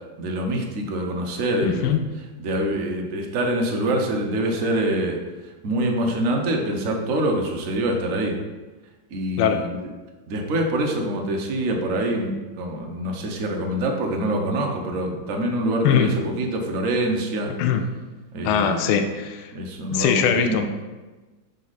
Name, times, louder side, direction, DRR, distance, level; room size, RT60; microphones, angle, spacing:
voice 1, 0.2-2.0 2.4-5.2 5.4-8.4 9.1-9.8 10.3-17.5 18.3-19.0 19.5-20.6, right 1 dB, 55° right, 1 dB, 1.0 m, -25 dB
voice 2, 1.6-2.0 9.4-9.6 15.8-16.1 17.6-17.8 18.4-19.5 19.9-20.6, left 8 dB, 85° left, 6 dB, 1.4 m, -21 dB
6.4 x 4.1 x 4.1 m, 1.2 s
omnidirectional pair, 2.3 m